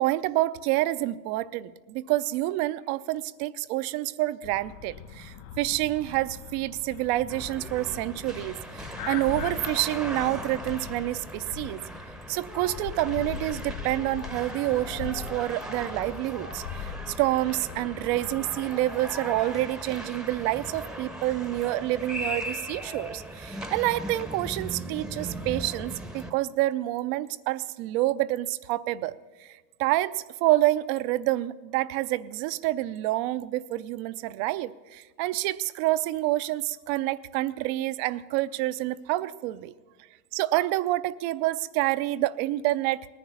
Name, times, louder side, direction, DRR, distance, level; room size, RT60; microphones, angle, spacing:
voice 1, 0.0-11.8 12.3-39.7 40.3-43.1, right 16 dB, 45° right, 16 dB, 0.6 m, -28 dB
sound 1, 4.4-18.7, left 8 dB, 60° left, 2.4 m, -41 dB
sound 2, 7.3-26.3, equal, ahead, 0.8 m, -38 dB
18.5 x 10.0 x 7.0 m, 1.3 s
hypercardioid pair, 110°, 49 cm